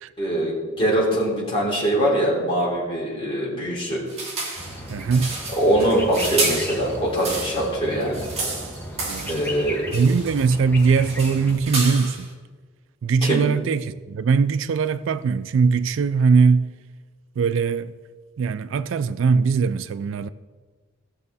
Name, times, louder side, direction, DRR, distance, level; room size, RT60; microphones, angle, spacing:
voice 1, 0.2-4.0 5.5-8.3 9.2-9.9 13.2-13.4, right 1 dB, 25° left, 3.2 m, -22 dB
sound 1, 4.1-7.7 8.0-9.5 9.9-10.5 10.8-12.3, right 3 dB, 30° right, 2.1 m, -30 dB
sound 2, 4.6-11.6, left 1 dB, 10° left, 1.1 m, -35 dB
voice 2, 4.9-5.3 9.0-9.3 9.9-12.3 13.0-16.7 17.4-17.9 18.4-20.3, right 5 dB, 65° right, 0.3 m, -20 dB
16.0 x 6.6 x 4.1 m
head